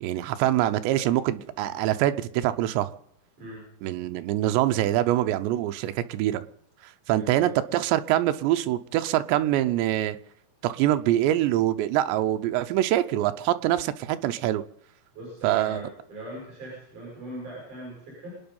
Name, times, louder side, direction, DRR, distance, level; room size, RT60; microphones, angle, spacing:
voice 1, 0.0-2.9 3.8-6.4 7.1-10.2 10.6-14.6 15.4-15.8, right 13 dB, 85° right, 10 dB, 3.0 m, -24 dB
voice 2, 7.1-7.5 15.1-18.4, right 1 dB, 45° right, -4 dB, 8.7 m, -40 dB
26.5 x 9.6 x 5.4 m, 0.71 s
omnidirectional pair, 5.0 m